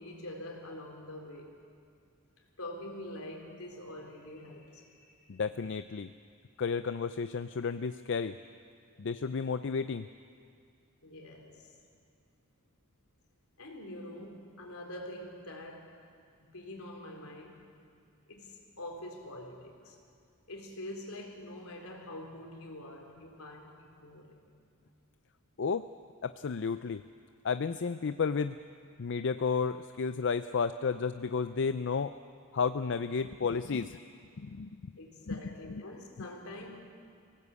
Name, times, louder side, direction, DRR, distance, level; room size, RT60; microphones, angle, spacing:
voice 1, 0.0-1.5 2.6-5.4 11.0-11.7 13.6-15.9 16.4-17.6 18.3-20.0 20.5-24.4 35.0-36.8, left 1 dB, 75° left, 1 dB, 3.8 m, -45 dB
voice 2, 5.3-6.1 6.6-8.4 9.0-10.1 25.6-25.9 26.2-27.0 27.4-28.6 29.0-32.1 32.5-34.0 34.4-34.7 35.3-35.4 35.7-35.8 36.2-36.3, left 5 dB, 55° left, 11 dB, 0.5 m, -32 dB
24.5 x 17.5 x 8.3 m, 2.3 s
head